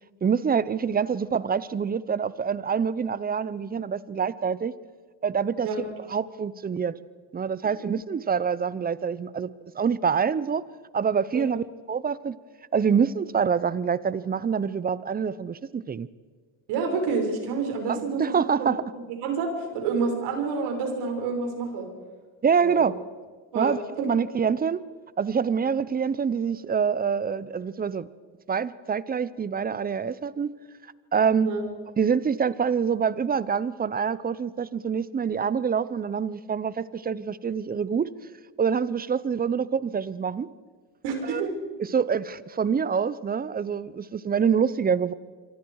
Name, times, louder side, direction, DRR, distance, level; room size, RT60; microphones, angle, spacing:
voice 1, 0.2-4.7 5.2-6.9 7.3-9.5 9.7-10.6 10.9-12.4 12.7-16.1 17.9-18.8 22.4-22.9 23.5-24.8 25.2-28.1 28.5-30.5 31.1-31.5 32.0-38.1 38.6-40.5 41.3-41.5 41.8-45.1, right 6 dB, 20° right, 18 dB, 0.8 m, -26 dB
voice 2, 16.7-18.7 19.2-21.9 22.6-22.9 23.5-24.1 31.4-31.6 41.0-41.5, right 4 dB, 75° right, 3 dB, 5.7 m, -28 dB
27.5 x 24.0 x 4.8 m, 1.5 s
supercardioid pair, 105°, 40 cm